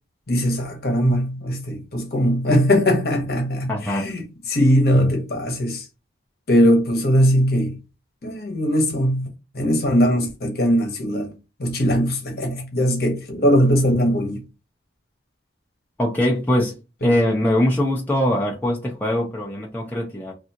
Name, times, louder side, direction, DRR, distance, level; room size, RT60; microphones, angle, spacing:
voice 1, 0.3-5.8 6.5-7.8 8.2-9.3 9.5-11.3 11.6-14.4 17.0-17.3, equal, 55° left, 1.1 m, -20 dB
voice 2, 3.7-4.1 16.0-16.8 17.0-20.3, left 1 dB, 10° left, 0.6 m, -22 dB
3.4 x 2.5 x 2.8 m
head